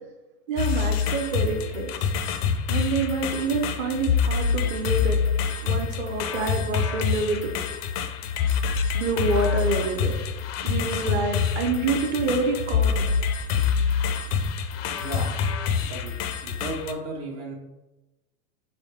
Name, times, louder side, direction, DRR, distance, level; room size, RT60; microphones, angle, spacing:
voice 1, 0.5-1.9 2.7-5.2 5.6-7.5 8.9-10.2 10.6-13.1 13.8-13.9, right 3 dB, 25° right, 3 dB, 0.7 m, -27 dB
sound 1, 0.6-16.9, left 6 dB, 45° left, 0.4 m, -26 dB
voice 2, 15.0-15.4 15.8-16.1 16.4-17.6, right 2 dB, 50° right, -2 dB, 1.1 m, -34 dB
4.0 x 4.0 x 3.3 m, 1.0 s
hypercardioid pair, 130°, 46 cm